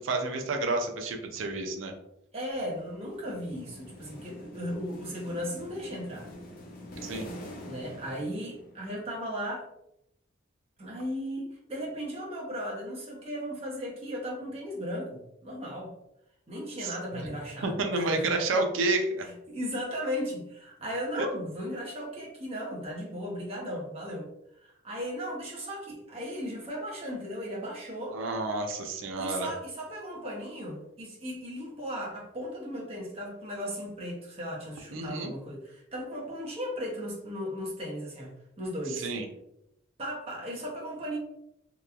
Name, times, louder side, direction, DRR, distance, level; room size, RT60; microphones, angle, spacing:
voice 1, 0.0-1.9 7.0-7.3 16.8-17.2 17.6-19.3 21.2-21.3 28.1-29.5 34.9-35.3 39.0-39.3, right 2 dB, 75° right, 4 dB, 0.4 m, -30 dB
voice 2, 2.3-6.3 7.6-9.7 10.8-15.9 16.5-18.4 19.2-24.3 24.6-28.2 29.2-39.1 40.0-41.2, equal, 30° right, -3 dB, 0.6 m, -36 dB
sound 1, 2.5-9.0, equal, 45° left, 0.5 m, -46 dB
2.9 x 2.2 x 2.3 m, 0.81 s
head